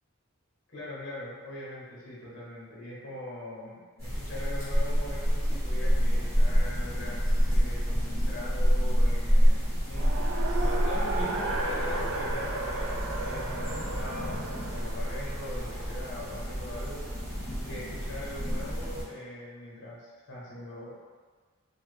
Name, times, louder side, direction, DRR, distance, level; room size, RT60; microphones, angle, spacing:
voice 1, 0.7-17.1 17.6-20.9, left 1 dB, 55° left, -6 dB, 0.8 m, -41 dB
sound 1, 4.0-19.0, equal, 15° right, 1.1 m, -28 dB
Race car auto racing, 10.0-19.0, right 2 dB, 60° right, 0.3 m, -36 dB
3.1 x 2.1 x 3.2 m, 1.5 s
head